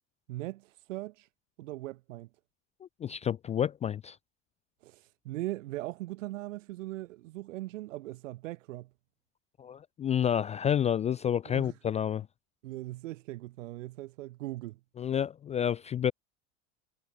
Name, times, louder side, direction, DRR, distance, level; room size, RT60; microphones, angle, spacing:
voice 1, 0.3-1.3 1.6-2.3 4.8-8.9 11.5-11.7 12.6-14.8, right 17 dB, 90° right, 2.1 m, -40 dB
voice 2, 3.0-4.2 9.6-12.3 15.0-16.1, left 9 dB, 20° left, 0.3 m, -29 dB
supercardioid pair, 125°, 37 cm